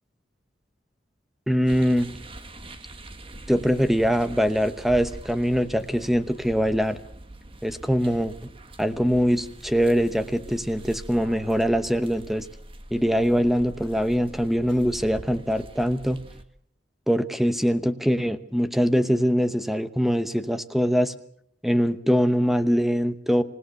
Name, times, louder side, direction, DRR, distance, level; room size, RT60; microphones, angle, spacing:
voice 1, 1.5-2.1 3.5-7.0 7.6-8.3 8.8-12.5 12.9-16.2 17.1-21.1 21.6-23.4, equal, ahead, 12 dB, 0.9 m, -23 dB
sound 1, 1.7-16.4, right 1 dB, 30° right, 1.4 m, -43 dB
27.0 x 17.5 x 6.5 m, 0.69 s
head